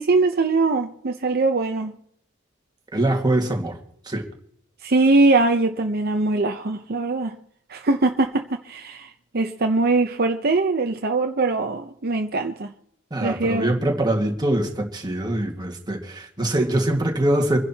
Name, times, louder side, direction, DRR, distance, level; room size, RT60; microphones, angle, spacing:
voice 1, 0.0-1.9 4.8-7.4 7.7-12.7 13.2-13.8, right 3 dB, 50° right, 0.8 m, -22 dB
voice 2, 2.9-3.7 4.1-4.2 13.1-17.6, right 1 dB, 20° right, 1.9 m, -23 dB
26.5 x 11.0 x 2.9 m
head